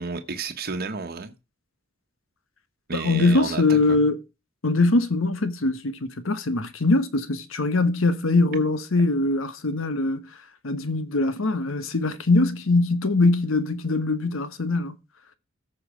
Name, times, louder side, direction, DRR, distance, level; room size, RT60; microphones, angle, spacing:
voice 1, 0.0-1.3 2.9-4.0, right 4 dB, 50° right, 1.1 m, -32 dB
voice 2, 2.9-4.2 4.6-10.3 10.6-15.0, left 2 dB, 85° left, 1.2 m, -22 dB
14.0 x 5.6 x 5.0 m
head